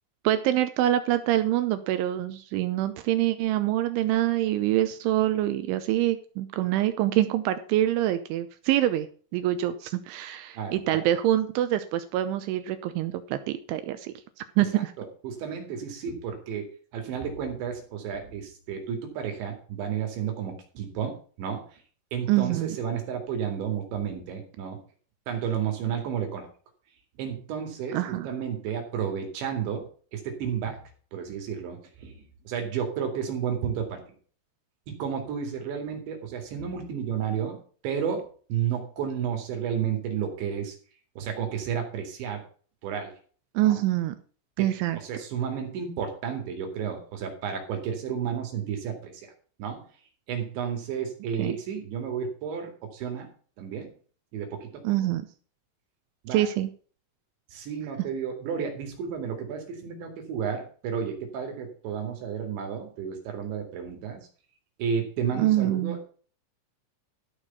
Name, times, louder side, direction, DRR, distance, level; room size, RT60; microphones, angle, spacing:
voice 1, 0.2-9.1 9.3-14.1 14.6-14.9 22.3-22.8 27.9-28.3 43.6-44.2 44.6-45.0 51.4-51.6 54.8-55.2 56.3-56.7 65.4-66.0, right 13 dB, 80° right, 11 dB, 3.0 m, -25 dB
voice 2, 10.6-11.0 14.6-21.6 22.1-24.8 25.3-26.5 27.2-28.0 28.2-29.8 30.1-30.8 31.1-32.2 32.5-34.0 34.9-37.6 37.8-40.7 41.2-42.4 42.8-43.1 43.6-43.8 44.6-44.7 44.9-49.3 49.6-49.8 50.3-53.3 53.6-53.9 54.3-54.8 56.2-56.5 57.5-64.2 64.8-66.1, right 7 dB, 65° right, 4 dB, 4.4 m, -32 dB
14.0 x 6.6 x 5.5 m, 0.42 s
omnidirectional pair, 5.9 m